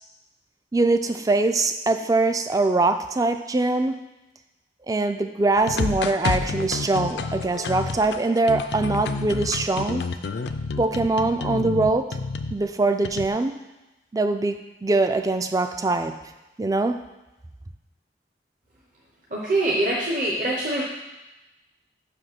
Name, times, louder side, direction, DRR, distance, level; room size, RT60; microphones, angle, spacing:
voice 1, 0.7-4.0 4.9-10.1 10.8-12.1 12.5-13.6 14.1-16.1 16.6-17.0, right 2 dB, 20° right, 9 dB, 0.3 m, -23 dB
sound 1, 5.6-12.6 13.0-13.3, left 4 dB, 65° left, 0.4 m, -29 dB
voice 2, 19.3-20.8, right 1 dB, 45° right, -4 dB, 0.8 m, -24 dB
5.6 x 5.0 x 6.0 m, 1.0 s
head